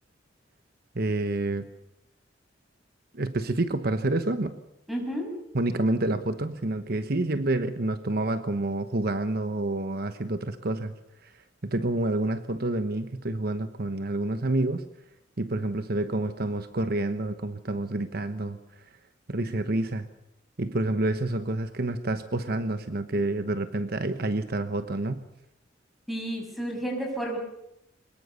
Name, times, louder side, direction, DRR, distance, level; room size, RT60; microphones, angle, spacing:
voice 1, 0.9-1.7 3.1-4.6 5.5-10.9 11.2-11.3 11.6-14.9 15.4-18.6 19.3-20.1 20.6-25.2, right 2 dB, 55° right, 10 dB, 1.1 m, -28 dB
voice 2, 4.9-5.3 26.1-27.4, right 1 dB, ahead, 2 dB, 6.6 m, -31 dB
23.5 x 21.0 x 7.0 m, 0.82 s
head